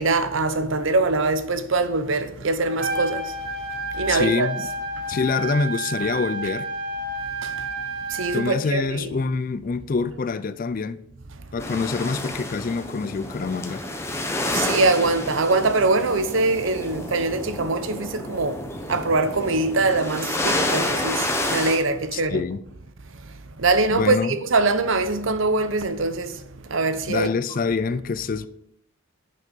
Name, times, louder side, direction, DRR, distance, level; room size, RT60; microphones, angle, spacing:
voice 1, 0.0-3.5 3.9-4.5 5.0-5.1 7.4-7.7 8.1-9.1 14.4-22.4 23.2-27.3, right 3 dB, 65° right, 0.7 m, -23 dB
Trumpet, 2.7-8.5, right 2 dB, 45° right, 1.6 m, -30 dB
voice 2, 4.1-4.7 5.1-6.7 8.3-11.0 11.5-13.8 22.1-22.6 23.9-24.4 27.1-28.5, left 4 dB, 40° left, 0.3 m, -26 dB
sound 1, 11.6-21.8, left 1 dB, 10° left, 1.0 m, -29 dB
7.7 x 6.5 x 5.2 m
head